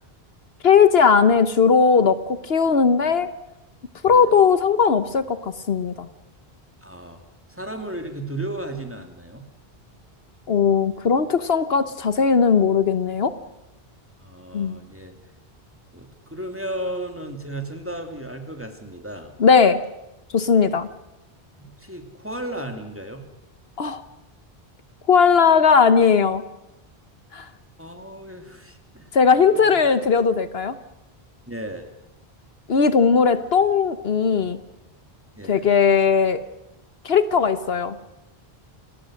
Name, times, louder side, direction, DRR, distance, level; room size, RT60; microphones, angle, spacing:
voice 1, 0.6-3.3 4.0-6.1 10.5-13.3 14.5-14.7 19.4-19.8 20.3-20.9 23.8-24.0 25.1-26.4 27.3-27.5 29.1-30.7 32.7-34.6 35.5-36.4 37.0-38.0, left 6 dB, 75° left, 12 dB, 1.3 m, -18 dB
voice 2, 6.8-7.2 7.5-9.4 14.2-15.1 15.9-19.3 21.6-23.2 27.8-29.1 29.5-29.8 31.5-31.9 35.4-35.7, right 1 dB, 10° right, 5 dB, 2.8 m, -34 dB
29.0 x 19.0 x 6.5 m, 0.92 s
omnidirectional pair, 1.0 m